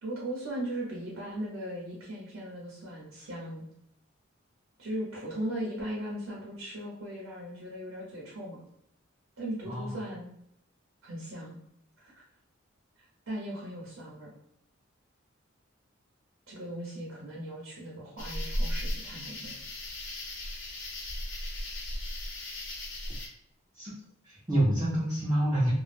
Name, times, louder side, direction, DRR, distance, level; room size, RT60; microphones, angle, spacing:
voice 1, 0.0-3.6 4.8-8.6 9.4-10.3 11.0-11.6 12.0-12.2 13.3-14.3 16.5-19.6, right 1 dB, 70° right, -4 dB, 0.7 m, -38 dB
sound 1, 18.2-23.3, left 1 dB, 60° left, 0.6 m, -36 dB
voice 2, 24.2-25.7, right 1 dB, 15° right, -8 dB, 0.5 m, -27 dB
2.1 x 2.0 x 3.1 m, 0.74 s
head